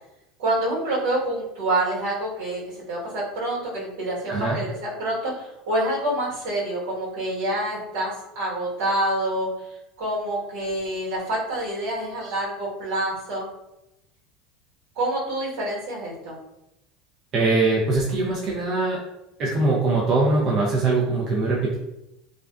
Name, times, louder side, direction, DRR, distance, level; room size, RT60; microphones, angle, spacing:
voice 1, 0.4-9.5 10.0-13.5 14.9-16.4, right 1 dB, 75° right, -5 dB, 1.2 m, -27 dB
voice 2, 4.3-4.6 17.3-19.0 19.4-21.8, right 3 dB, 40° right, -5 dB, 0.5 m, -22 dB
2.4 x 2.2 x 2.3 m, 0.89 s
supercardioid pair, 140°, 0 cm